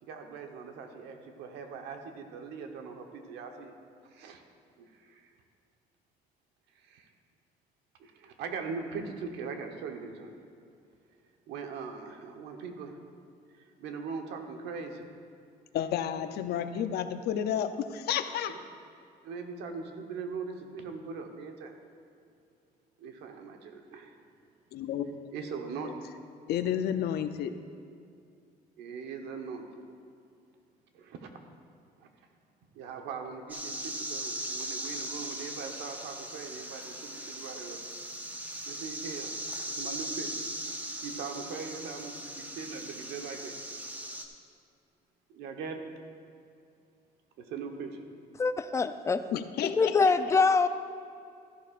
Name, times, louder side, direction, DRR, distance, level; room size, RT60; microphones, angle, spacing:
voice 1, 0.0-3.7 4.0-4.4 4.8-5.3 6.7-7.1 8.0-10.3 11.5-13.0 13.6-15.1 19.2-21.8 23.0-24.2 25.3-25.9 28.8-29.7 30.9-31.3 32.0-32.1 32.7-37.8 38.6-40.3 40.8-43.5 45.3-45.8 47.4-48.0, right 5 dB, 85° right, 4 dB, 1.1 m, -41 dB
voice 2, 15.7-18.5 24.7-25.2 25.8-26.0 26.5-27.6 49.3-50.1, left 9 dB, 70° left, 9 dB, 0.6 m, -31 dB
sound 1, 33.5-44.2, right 1 dB, 10° right, 0.9 m, -39 dB
voice 3, 48.4-49.2 49.6-50.7, left 4 dB, 15° left, 10 dB, 0.4 m, -24 dB
14.0 x 11.0 x 2.5 m, 2.4 s
cardioid pair, 110°, 17 cm